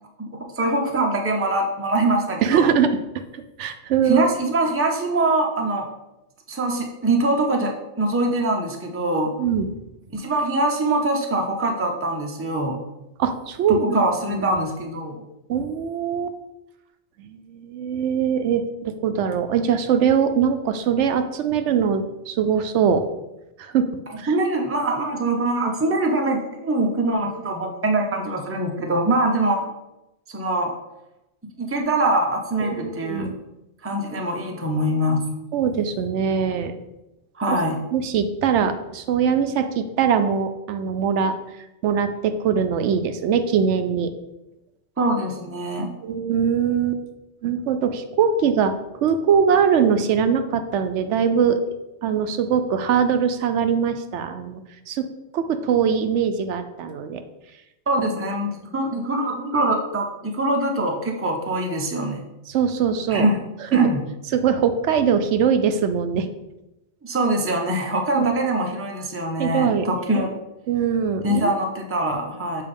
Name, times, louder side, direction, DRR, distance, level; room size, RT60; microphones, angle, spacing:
voice 1, 0.2-2.7 4.0-5.9 6.5-9.3 10.1-12.8 13.7-15.2 24.3-29.6 30.3-30.7 31.6-33.3 33.8-35.3 37.4-37.8 45.0-45.9 57.9-62.2 63.1-63.4 63.7-64.0 67.0-70.3 71.2-72.6, right 2 dB, 15° right, 1 dB, 0.6 m, -23 dB
voice 2, 2.4-3.0 3.6-4.3 9.4-9.7 13.2-14.0 14.3-14.6 15.5-16.4 17.2-23.0 23.6-23.9 24.2-24.3 32.7-33.3 35.5-36.7 37.5-37.6 37.9-41.4 41.8-44.1 46.0-47.0 47.4-48.7 49.0-51.6 52.0-54.6 54.9-55.1 55.3-57.2 62.5-63.3 63.7-63.9 64.3-66.3 68.1-68.4 69.4-69.9 70.2-70.3 70.7-71.5, right 7 dB, 80° right, 9 dB, 0.9 m, -22 dB
6.8 x 2.8 x 5.2 m, 0.95 s
omnidirectional pair, 1.2 m